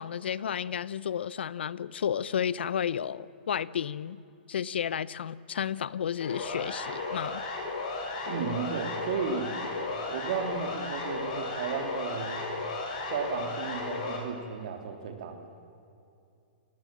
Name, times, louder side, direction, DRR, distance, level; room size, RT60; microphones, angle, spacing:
voice 1, 0.0-4.2 4.5-7.4, left 8 dB, 80° left, 19 dB, 0.8 m, -32 dB
Siren, 6.2-14.2, left 3 dB, 45° left, 6.5 m, -34 dB
voice 2, 8.3-9.5 10.1-12.5 13.1-15.5, right 6 dB, 45° right, 6 dB, 3.1 m, -34 dB
29.0 x 19.5 x 7.6 m, 2.6 s
hypercardioid pair, 175°, 6 cm